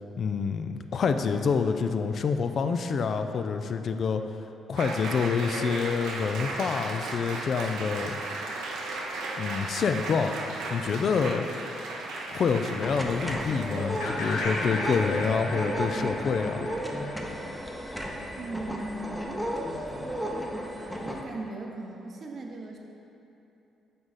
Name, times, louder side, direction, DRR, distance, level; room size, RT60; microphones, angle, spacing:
voice 1, 0.2-4.2 4.7-8.2 9.4-10.3 10.7-11.4 12.3-16.7, left 5 dB, 55° left, 7 dB, 0.3 m, -27 dB
Applause, 4.8-16.1, right 2 dB, 90° right, 0.7 m, -36 dB
sound 1, 12.8-21.2, equal, 5° left, 0.7 m, -33 dB
sound 2, 14.0-17.9, left 1 dB, 90° left, 0.8 m, -35 dB
voice 2, 18.4-19.2 21.0-22.8, right 2 dB, 50° right, 1 dB, 0.8 m, -38 dB
7.7 x 3.8 x 4.1 m, 2.9 s
cardioid pair, 90°, 0 cm